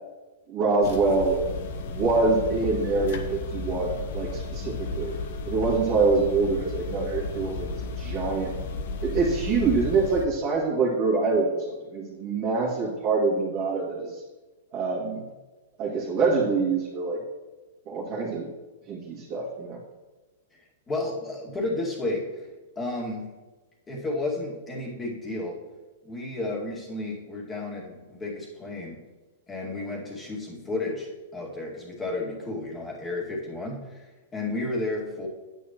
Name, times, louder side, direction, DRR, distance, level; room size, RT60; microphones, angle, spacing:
voice 1, 0.5-1.4 1.9-5.2 5.5-7.7 8.0-8.5 9.0-14.2 14.7-15.2 15.8-17.2 17.9-18.5 18.9-19.8, right 4 dB, 35° right, -7 dB, 2.2 m, -25 dB
sound 1, 0.8-10.3, left 3 dB, 65° left, 0.9 m, -33 dB
voice 2, 20.9-22.5 22.8-23.3 23.9-25.6 26.0-29.0 29.5-34.0 34.3-35.3, left 2 dB, 15° left, -3 dB, 2.3 m, -32 dB
9.1 x 8.6 x 3.1 m, 1.2 s
hypercardioid pair, 130°, 0 cm